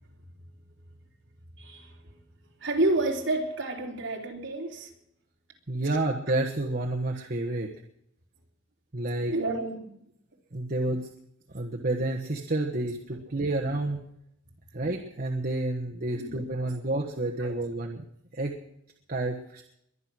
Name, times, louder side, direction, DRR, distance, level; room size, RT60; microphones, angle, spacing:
voice 1, 2.6-4.9 9.3-9.9 16.2-16.7 17.4-17.5, right 2 dB, 65° right, 0 dB, 3.6 m, -29 dB
voice 2, 5.7-7.7 8.9-9.3 10.5-11.1 11.5-14.0 14.7-18.0 18.3-18.5 19.1-19.6, right 2 dB, 50° right, 0 dB, 1.4 m, -29 dB
22.5 x 10.0 x 6.3 m, 0.74 s
head